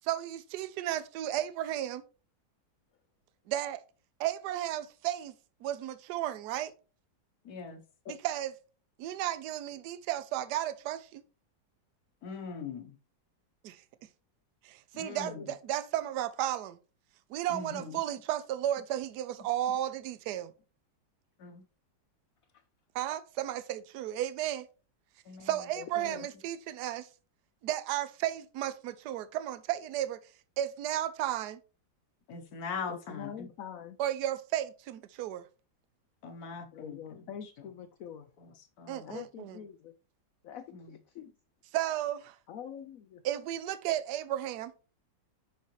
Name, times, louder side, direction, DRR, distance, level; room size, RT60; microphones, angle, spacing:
voice 1, 0.0-2.0 3.5-3.8 4.2-5.3 5.6-6.7 8.1-8.5 9.0-11.2 13.6-13.8 14.6-16.8 17.3-20.5 22.9-24.7 25.4-27.1 27.6-30.2 30.6-31.6 34.0-35.4 38.9-39.6 41.7-42.4 43.2-44.7, right 12 dB, 70° right, 1.1 m, -34 dB
voice 2, 7.4-7.8 12.2-12.9 14.9-15.5 17.5-18.0 21.4-21.6 25.2-25.5 32.3-33.5 36.2-37.7 38.4-39.2 40.7-40.9, left 5 dB, 60° left, 1.3 m, -42 dB
voice 3, 25.8-26.3 32.9-34.0 36.7-38.3 39.0-39.9 40.4-41.3 42.5-43.2, left 8 dB, 80° left, 0.7 m, -44 dB
6.4 x 5.6 x 3.0 m
omnidirectional pair, 2.0 m